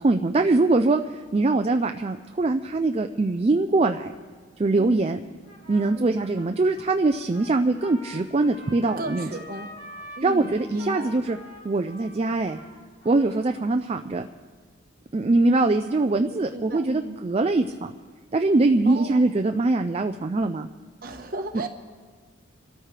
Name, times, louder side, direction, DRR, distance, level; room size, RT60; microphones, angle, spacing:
voice 1, 0.0-4.1 4.6-5.2 5.7-9.3 10.2-11.4 11.6-12.6 13.1-14.3 15.1-17.9 18.3-20.7, right 2 dB, 30° right, 6 dB, 0.4 m, -22 dB
Trumpet, 5.4-13.7, equal, 40° left, 3.3 m, -45 dB
voice 2, 9.0-9.7 10.2-11.1 13.2-13.5 16.5-17.2 18.8-19.3 21.0-21.7, right 1 dB, 50° right, 4 dB, 1.2 m, -35 dB
26.5 x 13.5 x 3.3 m, 1.5 s
head